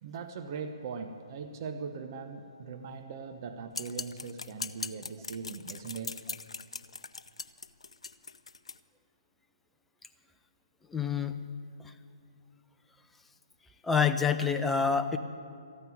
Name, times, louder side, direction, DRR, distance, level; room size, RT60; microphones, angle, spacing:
voice 1, 0.0-6.2, right 5 dB, 40° right, 7 dB, 0.9 m, -40 dB
sound 1, 3.7-8.8, left 4 dB, 75° left, 0.6 m, -40 dB
voice 2, 10.9-11.4 13.8-15.2, left 6 dB, 5° left, 6 dB, 0.6 m, -27 dB
14.5 x 9.2 x 9.3 m, 2.3 s
figure-of-eight pair, 140°, 3 cm